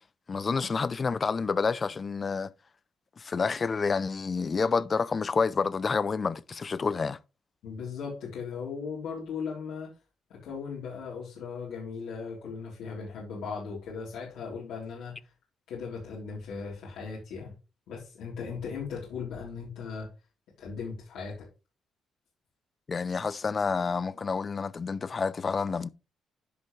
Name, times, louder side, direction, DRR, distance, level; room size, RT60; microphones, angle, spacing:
voice 1, 0.3-2.5 3.2-7.2 22.9-25.9, left 5 dB, 35° left, 0.6 m, -29 dB
voice 2, 7.6-9.9 10.3-15.1 15.7-17.5 17.9-20.1 20.6-21.5, left 5 dB, 85° left, 3.6 m, -37 dB
11.0 x 5.2 x 3.3 m
cardioid pair, 90°, 0 cm